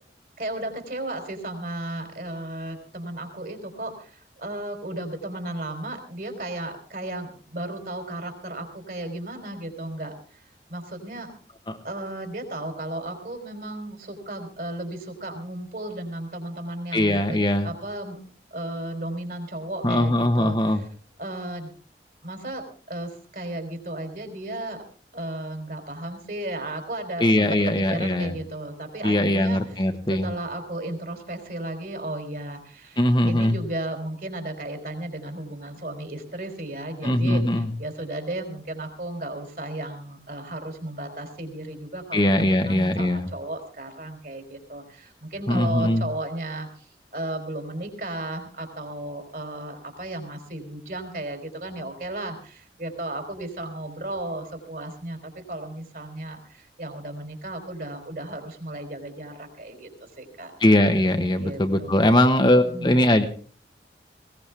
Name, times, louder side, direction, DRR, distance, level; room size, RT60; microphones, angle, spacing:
voice 1, 0.4-10.4 10.7-11.3 11.8-17.4 17.6-18.2 18.5-20.9 21.2-21.7 22.2-24.8 25.1-59.9 60.2-60.5 61.4-62.2 62.6-63.0, right 1 dB, 50° right, 6 dB, 3.7 m, -34 dB
voice 2, 16.9-17.7 19.8-20.8 27.2-28.4 29.0-30.3 33.0-33.5 37.0-37.7 42.1-43.2 45.5-46.0 60.6-63.2, left 1 dB, 25° left, 6 dB, 1.2 m, -21 dB
20.0 x 18.0 x 3.4 m, 0.40 s
head